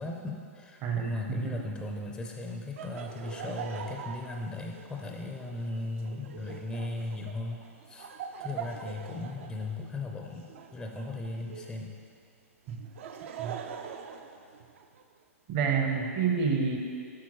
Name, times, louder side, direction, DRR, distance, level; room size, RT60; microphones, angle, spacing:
voice 1, 0.0-7.6 7.9-8.1 8.4-11.9, left 2 dB, 5° left, 1 dB, 0.4 m, -37 dB
voice 2, 0.8-1.6 12.7-12.8 13.4-13.6 15.5-16.8, right 6 dB, 40° right, 3 dB, 0.8 m, -29 dB
Laughter, 2.8-11.8 12.7-15.0, right 7 dB, 60° right, 0.5 m, -43 dB
8.5 x 5.9 x 3.1 m, 2.4 s
hypercardioid pair, 120°, 8 cm